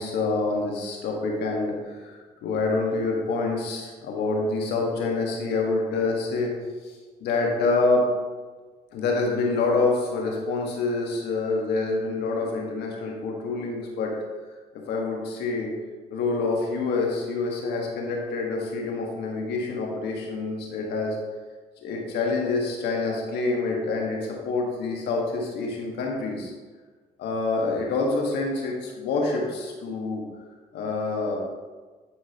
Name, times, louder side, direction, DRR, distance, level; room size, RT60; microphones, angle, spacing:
voice 1, 0.0-6.5 6.8-8.1 8.9-14.2 14.7-15.7 16.1-21.2 21.8-26.5 27.2-30.3 30.7-31.4, left 3 dB, 85° left, -1 dB, 1.6 m, -27 dB
11.5 x 4.8 x 2.9 m, 1.4 s
supercardioid pair, 65°, 17 cm